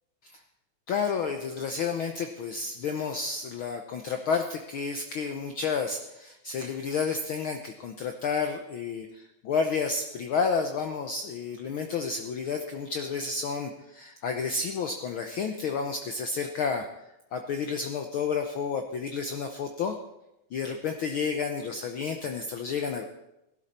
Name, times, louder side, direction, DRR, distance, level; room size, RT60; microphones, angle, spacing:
voice 1, 0.9-16.9 17.3-19.9 20.5-23.1, left 5 dB, 85° left, 5 dB, 1.1 m, -31 dB
17.0 x 12.0 x 4.3 m, 0.90 s
omnidirectional pair, 3.5 m